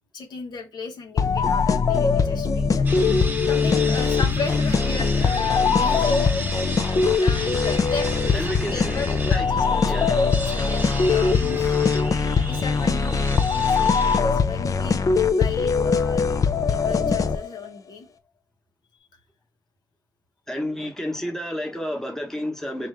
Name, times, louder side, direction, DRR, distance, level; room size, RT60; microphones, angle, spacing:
voice 1, 0.1-6.2 7.2-11.8 12.3-15.0 15.3-18.1, left 5 dB, 85° left, 1.0 m, -35 dB
sound 1, 1.2-17.7, left 5 dB, 50° left, 0.5 m, -21 dB
sound 2, 2.9-14.2, right 2 dB, 25° right, 0.8 m, -35 dB
voice 2, 8.3-9.5 9.8-10.3 20.5-22.9, equal, 5° left, 1.0 m, -30 dB
4.5 x 2.6 x 3.3 m
wide cardioid pair, 95°, 7 cm